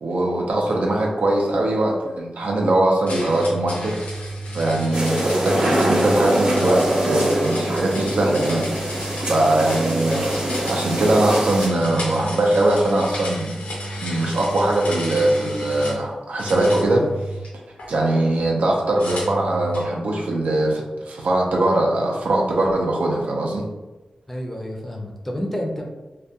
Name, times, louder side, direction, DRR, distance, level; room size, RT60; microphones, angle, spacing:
voice 1, 0.0-4.0 4.5-8.7 9.2-13.5 14.0-17.0 17.9-23.6, right 1 dB, 90° right, -1 dB, 0.5 m, -21 dB
sound 1, 3.1-16.0 16.4-17.9 19.0-19.9, right 1 dB, 90° left, 0.6 m, -32 dB
sound 2, 4.9-11.7, right 1 dB, 40° right, 0.6 m, -24 dB
voice 2, 24.3-25.8, equal, 10° left, 1 dB, 0.4 m, -29 dB
2.3 x 2.2 x 2.7 m, 1.1 s
wide cardioid pair, 85°, 2 cm